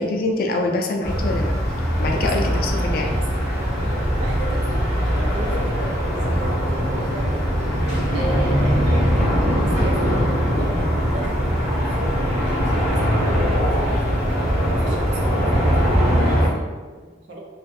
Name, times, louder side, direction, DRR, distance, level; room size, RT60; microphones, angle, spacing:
voice 1, 0.0-1.5 2.0-3.1, left 2 dB, 55° left, 2 dB, 0.3 m, -24 dB
sound 1, 1.0-16.5, equal, 40° right, 1.0 m, -21 dB
voice 2, 2.1-2.5 2.8-7.4 8.1-14.4 14.7-17.4, right 1 dB, 70° right, -1 dB, 0.5 m, -36 dB
2.4 x 2.3 x 2.6 m, 1.4 s
head